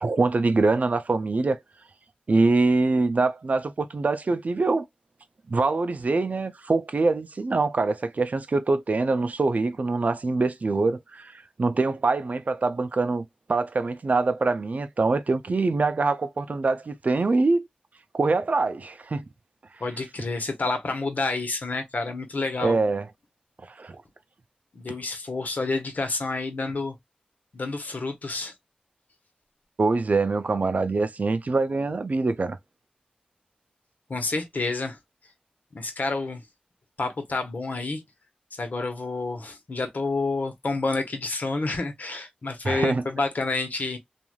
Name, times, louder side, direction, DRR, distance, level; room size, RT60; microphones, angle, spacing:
voice 1, 0.0-1.6 2.3-4.8 5.5-17.7 18.1-19.3 22.6-23.0 23.8-24.0 29.8-32.6 42.6-43.0, right 3 dB, 65° right, 0.4 m, -24 dB
voice 2, 19.8-22.8 24.7-27.0 27.5-28.5 34.1-35.0 35.7-36.4 37.0-38.0 38.5-44.0, left 3 dB, 75° left, 0.9 m, -29 dB
3.1 x 2.4 x 2.3 m
cardioid pair, 40°, 3 cm